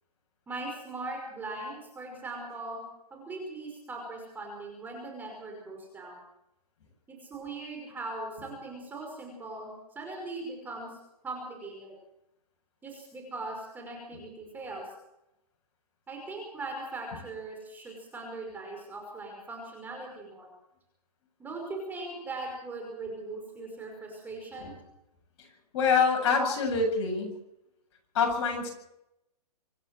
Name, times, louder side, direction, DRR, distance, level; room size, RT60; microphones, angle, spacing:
voice 1, 0.5-2.8 3.1-6.2 7.1-11.0 11.2-11.9 12.8-14.8 16.1-20.5 21.4-24.7 26.2-26.5, right 2 dB, 10° right, 1 dB, 5.4 m, -40 dB
voice 2, 25.7-27.4 28.1-28.7, left 5 dB, 45° left, 2 dB, 7.9 m, -26 dB
26.0 x 11.0 x 9.3 m, 0.83 s
hypercardioid pair, 155°, 20 cm